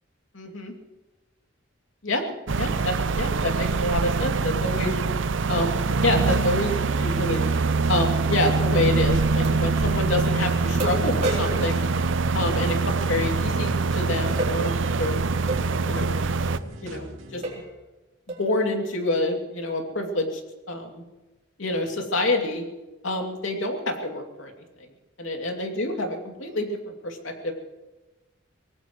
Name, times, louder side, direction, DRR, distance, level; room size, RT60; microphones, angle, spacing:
voice 1, 0.3-0.7 2.0-4.9 5.5-7.5 7.9-11.8 12.3-15.2 15.8-16.1 16.8-17.4 18.4-20.4 20.7-21.0 21.6-22.7 23.0-24.5 25.2-27.5, left 1 dB, 75° left, 3 dB, 2.7 m, -27 dB
sound 1, 2.5-16.6, right 4 dB, 70° right, 0.6 m, -24 dB
sound 2, 7.2-17.5, right 1 dB, 85° right, 2.5 m, -41 dB
sound 3, 8.4-8.5 9.4-9.6 10.2-10.3 10.8-12.7 14.4-14.6 15.5-15.7 16.5-16.6 17.0-17.1 17.4-17.7 18.3-18.5, right 2 dB, 35° right, 3.6 m, -32 dB
24.5 x 18.5 x 3.1 m, 1.1 s
head